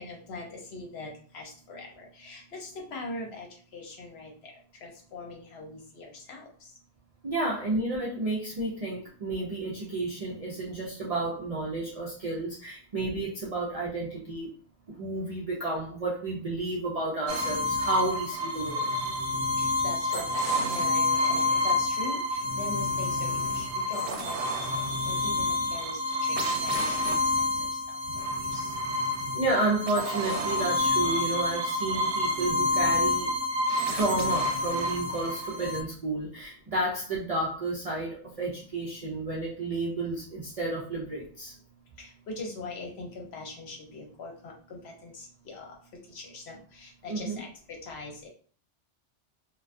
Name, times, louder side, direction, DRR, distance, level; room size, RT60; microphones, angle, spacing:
voice 1, 0.0-4.5 4.8-6.7 19.6-24.7 25.1-27.8 28.2-28.3 28.5-28.7 42.0-45.7 46.1-48.3, left 3 dB, 70° left, 1 dB, 0.9 m, -42 dB
voice 2, 7.2-14.5 14.9-19.0 29.3-33.3 33.9-41.5 47.1-47.4, right 2 dB, 50° right, -5 dB, 0.4 m, -31 dB
sound 1, 17.3-35.8, left 2 dB, 75° right, 0.8 m, -28 dB
2.3 x 2.2 x 2.5 m, 0.43 s
omnidirectional pair, 1.2 m